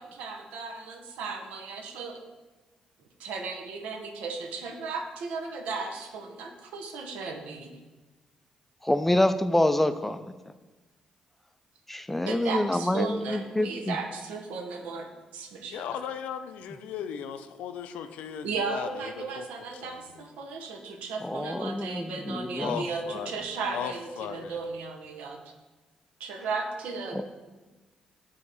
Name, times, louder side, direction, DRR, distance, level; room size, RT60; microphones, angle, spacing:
voice 1, 0.0-2.2 3.2-7.8 12.3-16.0 18.4-25.4 26.2-27.2, right 4 dB, 85° right, 3 dB, 0.7 m, -35 dB
voice 2, 8.8-10.3 11.9-14.0 21.2-22.8 27.1-27.2, left 1 dB, 10° left, 11 dB, 0.3 m, -26 dB
voice 3, 15.7-19.5 19.7-20.3 22.6-24.6, left 8 dB, 85° left, 9 dB, 0.4 m, -37 dB
7.9 x 2.8 x 4.7 m, 1.2 s
cardioid pair, 75°, 2 cm